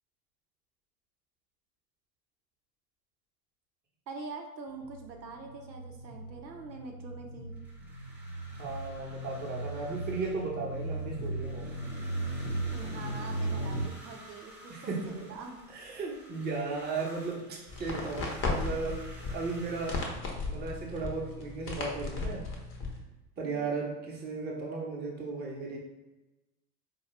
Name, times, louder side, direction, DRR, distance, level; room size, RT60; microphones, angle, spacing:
voice 1, 4.1-7.5 12.7-15.7 23.4-23.8, right 3 dB, 90° right, 2 dB, 0.6 m, -44 dB
sound 1, 4.7-13.8, right 2 dB, 60° left, 1.1 m, -37 dB
sound 2, 7.5-20.1, right 1 dB, 5° right, 0.3 m, -52 dB
voice 2, 8.6-11.7 14.7-15.1 15.7-19.0 19.3-20.0 20.5-22.5 23.4-25.8, right 3 dB, 20° right, -2 dB, 0.8 m, -35 dB
sound 3, 17.7-23.0, left 3 dB, 30° left, 0.7 m, -36 dB
4.3 x 2.3 x 3.0 m, 1.1 s
figure-of-eight pair, 80°, 50 cm